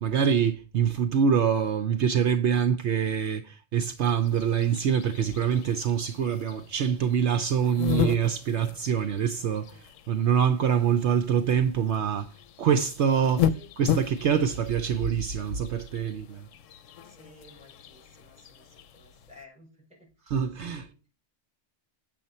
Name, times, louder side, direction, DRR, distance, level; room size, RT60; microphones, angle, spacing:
voice 1, 0.0-9.8 10.1-12.3 12.6-13.5 13.8-16.5 20.3-20.8, right 7 dB, 65° right, 0.9 m, -25 dB
sound 1, 4.1-19.5, left 9 dB, 90° left, 1.0 m, -35 dB
voice 2, 10.5-10.9 13.5-13.7 17.0-21.0, left 1 dB, 5° right, 6.8 m, -54 dB
9.3 x 7.5 x 4.2 m
omnidirectional pair, 1.3 m